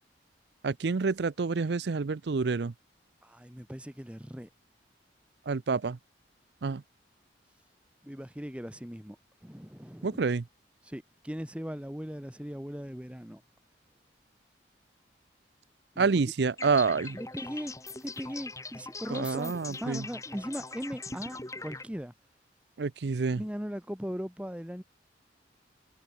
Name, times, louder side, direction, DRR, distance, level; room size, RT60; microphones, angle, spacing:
voice 1, 0.6-2.7 5.5-6.0 6.6-6.8 10.0-10.4 16.0-17.2 19.1-20.0 22.8-23.4, right 4 dB, 65° right, 0.5 m, -28 dB
voice 2, 3.2-4.5 8.0-9.2 9.4-10.3 10.8-13.4 15.9-16.3 17.1-17.7 18.0-22.1 23.3-24.8, equal, 5° right, 1.5 m, -39 dB
sound 1, 16.6-21.8, left 3 dB, 15° left, 3.3 m, -42 dB
head